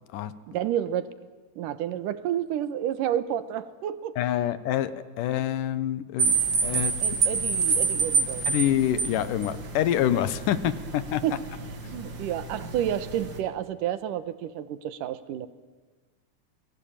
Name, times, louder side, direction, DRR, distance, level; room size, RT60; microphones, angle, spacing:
voice 1, 0.5-1.1 1.6-4.2 7.0-8.4 11.2-11.4 11.9-15.5, right 10 dB, 80° right, 14 dB, 2.7 m, -30 dB
voice 2, 4.2-6.3 6.6-6.9 8.5-11.2, left 11 dB, 80° left, 15 dB, 2.6 m, -26 dB
sound 1, 6.2-13.4, right 5 dB, 40° right, 2.6 m, -28 dB
28.0 x 20.5 x 8.9 m, 1.3 s
omnidirectional pair, 3.7 m